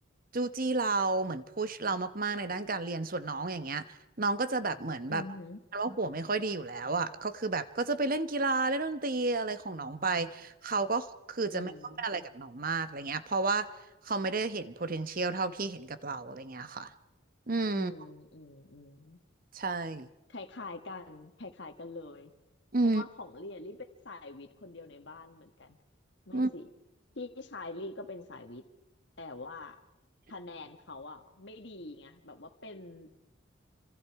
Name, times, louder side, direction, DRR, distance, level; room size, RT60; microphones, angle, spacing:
voice 1, 0.3-5.2 5.7-11.7 12.0-13.7 14.0-16.9 17.5-17.9 19.5-20.1 22.7-23.0 26.3-26.5, right 3 dB, 45° right, 12 dB, 1.1 m, -31 dB
voice 2, 5.1-5.6 11.5-12.1 17.7-19.2 20.3-22.3 22.8-25.8 26.2-26.6 27.1-28.6 29.2-29.8 30.3-33.1, left 2 dB, 60° left, 6 dB, 1.6 m, -44 dB
29.5 x 25.5 x 4.8 m, 1.0 s
head